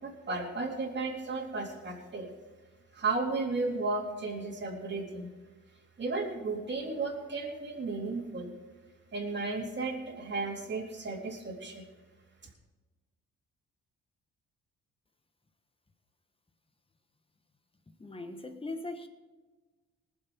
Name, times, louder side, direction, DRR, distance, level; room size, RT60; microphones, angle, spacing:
voice 1, 0.0-2.3 2.9-5.3 6.0-8.5 9.1-11.8, right 3 dB, 35° right, -1 dB, 3.9 m, -34 dB
voice 2, 18.0-19.1, left 2 dB, 20° left, 7 dB, 1.5 m, -39 dB
19.5 x 7.6 x 5.5 m, 1.3 s
cardioid pair, 90°, 30 cm